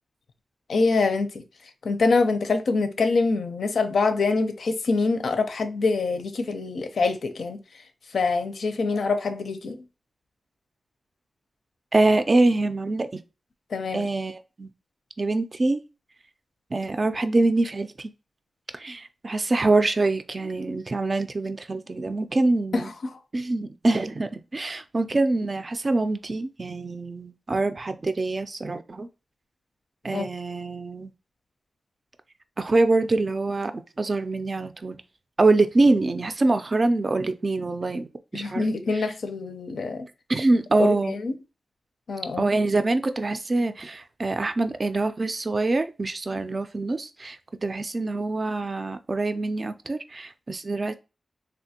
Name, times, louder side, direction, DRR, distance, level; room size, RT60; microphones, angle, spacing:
voice 1, 0.7-1.4 1.8-7.6 8.1-9.8 13.7-14.1 22.7-23.2 30.1-30.3 38.3-40.1 40.8-41.4 42.1-42.5, left 3 dB, 80° left, 0.5 m, -25 dB
voice 2, 11.9-13.2 13.9-14.7 15.2-15.8 16.7-18.1 18.7-22.9 23.3-29.1 30.0-31.1 32.6-35.0 35.4-38.1 38.3-38.6 38.9-39.0 40.3-41.1 42.4-50.9, right 2 dB, 40° right, 0.3 m, -24 dB
3.3 x 2.5 x 2.8 m
wide cardioid pair, 90°, 0 cm